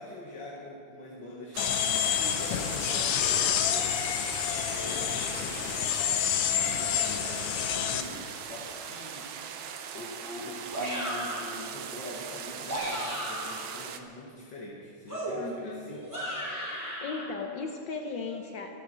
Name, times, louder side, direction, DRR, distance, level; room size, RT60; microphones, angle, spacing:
voice 1, 0.0-4.3 4.7-6.0 6.3-9.7 9.9-16.1, left 2 dB, 45° left, -3 dB, 1.9 m, -44 dB
sound 1, 1.5-14.0, right 7 dB, 75° right, 1.2 m, -40 dB
sound 2, 1.6-8.0, left 9 dB, 70° left, 1.4 m, -28 dB
sound 3, 10.7-11.5 12.5-13.7 15.1-17.2, right 1 dB, 5° right, 3.4 m, -35 dB
voice 2, 15.4-16.0 17.0-18.7, left 4 dB, 90° left, 3 dB, 1.0 m, -36 dB
24.5 x 8.2 x 6.3 m, 2.5 s
omnidirectional pair, 3.4 m